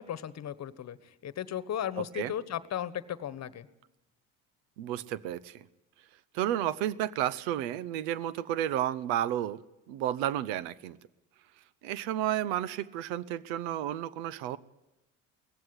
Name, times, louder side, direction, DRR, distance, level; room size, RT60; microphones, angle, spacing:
voice 1, 0.0-3.7, left 10 dB, 45° left, 16 dB, 1.3 m, -36 dB
voice 2, 2.0-2.3 4.8-5.6 6.3-9.6 9.9-11.0 11.8-14.6, right 12 dB, 80° right, 19 dB, 0.9 m, -32 dB
18.5 x 15.5 x 9.8 m, 0.95 s
supercardioid pair, 75°, 37 cm